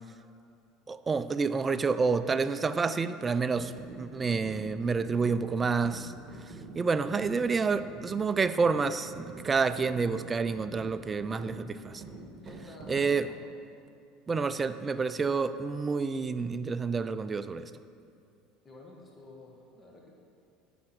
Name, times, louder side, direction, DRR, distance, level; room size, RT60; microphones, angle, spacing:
voice 1, 0.9-6.1 6.7-12.0 12.9-13.3 14.3-17.7, right 4 dB, 25° right, 12 dB, 0.4 m, -29 dB
sound 1, 3.6-13.2, right 2 dB, 40° right, 1.9 m, -46 dB
voice 2, 12.4-13.4 18.6-20.1, left 1 dB, 25° left, -1 dB, 1.5 m, -50 dB
9.2 x 5.9 x 6.1 m, 2.5 s
supercardioid pair, 105°, 0 cm